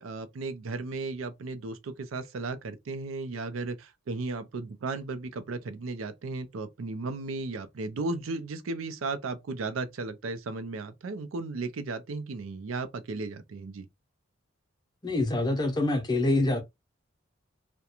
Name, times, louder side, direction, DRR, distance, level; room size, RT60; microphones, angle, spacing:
voice 1, 0.0-13.9, right 3 dB, 90° right, 0.5 m, -35 dB
voice 2, 15.0-16.6, left 2 dB, 20° left, 0.6 m, -25 dB
2.4 x 2.2 x 2.8 m
head